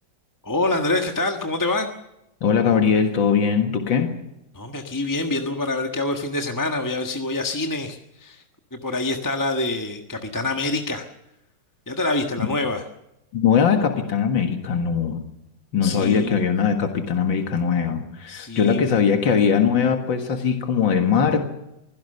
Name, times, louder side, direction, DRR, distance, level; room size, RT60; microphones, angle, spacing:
voice 1, 0.4-1.9 4.5-8.4 8.7-11.1 11.9-12.8 15.8-16.4 18.3-18.9, left 2 dB, 10° left, 3 dB, 1.3 m, -26 dB
voice 2, 2.4-4.1 13.3-15.2 15.7-21.5, left 6 dB, 85° left, 5 dB, 2.5 m, -20 dB
24.5 x 16.5 x 6.7 m, 0.88 s
omnidirectional pair, 2.0 m